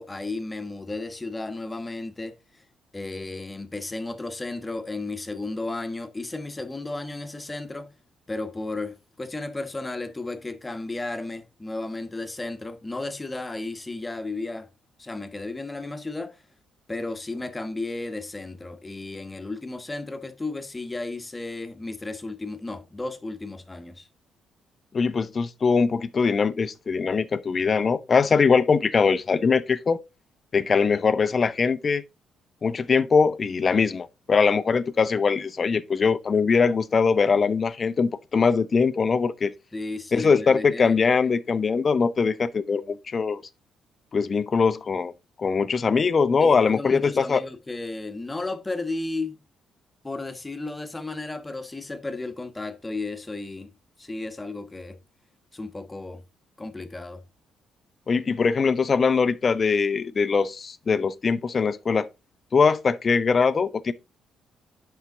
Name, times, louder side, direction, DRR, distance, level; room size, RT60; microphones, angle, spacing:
voice 1, 0.0-2.6 2.9-7.9 8.3-14.7 15.0-16.4 16.9-24.1 39.7-41.1 46.4-49.4 50.0-53.7 54.0-55.0 55.5-56.2 56.6-57.2, left 2 dB, 20° left, 1.4 m, -34 dB
voice 2, 24.9-30.0 30.5-32.0 32.6-39.5 40.1-43.4 44.1-45.1 45.4-47.4 58.1-62.1 62.5-63.9, left 5 dB, 45° left, 0.7 m, -22 dB
8.1 x 5.7 x 3.7 m
hypercardioid pair, 50°, 0 cm